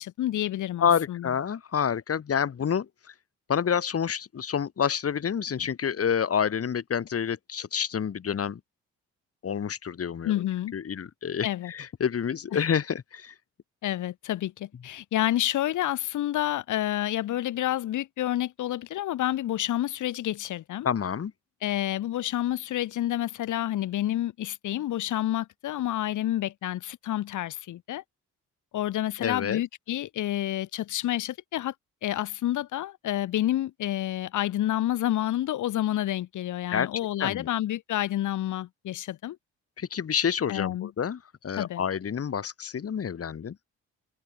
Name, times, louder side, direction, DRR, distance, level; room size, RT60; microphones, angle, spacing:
voice 1, 0.0-1.3 10.2-10.7 11.4-11.7 12.5-12.6 13.8-20.9 21.6-28.0 28.7-31.7 32.0-39.4 40.5-40.9 41.5-41.8, left 13 dB, 80° left, 3.2 m, -29 dB
voice 2, 0.8-3.1 3.5-8.6 9.4-10.3 10.7-13.3 20.8-21.3 29.2-29.6 36.7-36.9 37.2-37.5 39.8-43.5, left 7 dB, 50° left, 6.8 m, -28 dB
cardioid pair, 90°, 30 cm